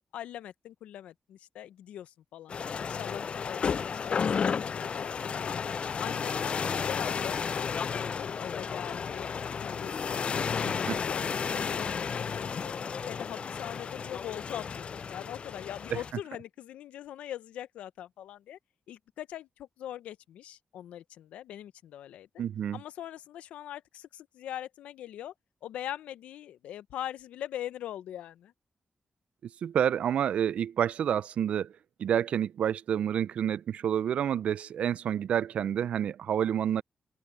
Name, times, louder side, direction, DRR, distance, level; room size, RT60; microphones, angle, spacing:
voice 1, 0.0-5.6 6.0-9.3 9.6-12.7 13.0-18.6 18.9-22.3 22.7-25.3 25.6-28.5, left 11 dB, 90° left, 0.7 m, -42 dB
sound 1, 2.5-16.1, left 6 dB, 60° left, 0.4 m, -32 dB
voice 2, 22.4-22.8 29.6-31.7 32.0-36.8, right 9 dB, 75° right, 0.4 m, -28 dB
open air
supercardioid pair, 45°, 2 cm